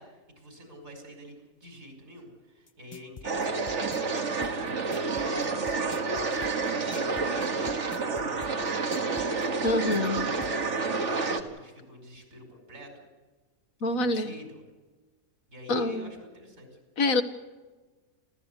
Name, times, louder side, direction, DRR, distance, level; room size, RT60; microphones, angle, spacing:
voice 1, 0.0-13.0 13.9-14.6 15.5-16.7, equal, 75° right, 4 dB, 5.7 m, -47 dB
sound 1, 2.7-10.5, left 4 dB, 30° left, 0.6 m, -46 dB
sound 2, 3.2-11.4, right 4 dB, 55° right, 1.9 m, -29 dB
voice 2, 9.6-10.3 13.8-14.3 15.7-16.1 17.0-17.2, left 2 dB, 75° left, 9 dB, 1.7 m, -26 dB
28.5 x 13.5 x 8.2 m, 1.3 s
omnidirectional pair, 1.4 m